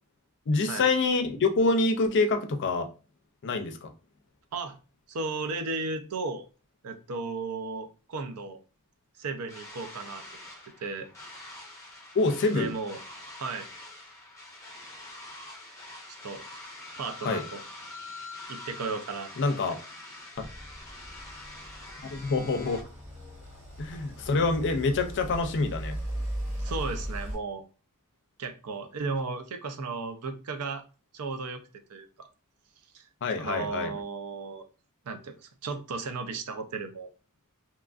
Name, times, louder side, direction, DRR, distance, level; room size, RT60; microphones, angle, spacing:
voice 1, 0.5-2.9 3.4-3.9 12.1-12.7 17.2-17.4 19.4-19.8 20.4-20.5 22.1-22.8 23.8-26.0 33.2-33.9, left 3 dB, 55° left, 0.4 m, -26 dB
voice 2, 5.1-6.5 6.8-8.6 9.2-10.2 10.8-11.1 12.5-13.0 13.4-13.7 16.2-16.7 17.0-17.6 18.5-19.3 26.6-27.6 28.4-30.8 31.1-31.6 31.9-32.3 32.9-33.0 33.4-34.7 35.1-37.1, right 4 dB, 80° right, 0.5 m, -35 dB
sound 1, 9.5-22.8, left 2 dB, 15° left, 0.7 m, -45 dB
sound 2, 20.3-27.3, equal, 30° right, 1.2 m, -38 dB
2.9 x 2.4 x 2.3 m
head